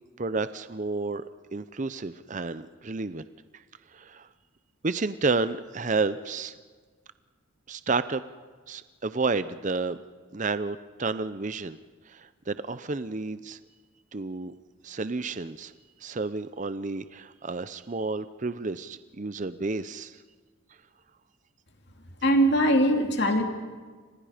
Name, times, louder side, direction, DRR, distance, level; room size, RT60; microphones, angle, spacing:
voice 1, 0.2-1.2 1.5-3.2 3.5-3.6 3.9-4.3 4.8-6.5 7.7-8.2 8.7-10.0 10.3-11.8 12.1-13.6 14.1-14.5 14.8-15.7 16.0-20.2, right 3 dB, 35° right, 13 dB, 0.6 m, -31 dB
voice 2, 22.2-23.4, equal, 55° left, 4 dB, 2.7 m, -21 dB
29.5 x 26.0 x 5.1 m, 1.5 s
head